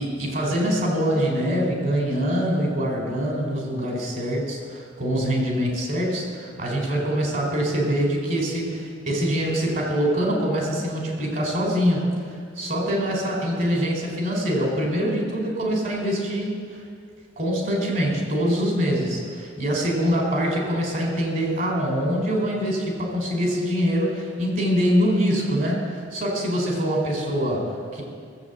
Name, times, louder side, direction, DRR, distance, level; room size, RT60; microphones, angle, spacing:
voice 1, 0.0-16.8 17.4-19.1 19.6-28.0, equal, 50° right, 0 dB, 4.0 m, -24 dB
18.5 x 7.8 x 8.0 m, 2.1 s
head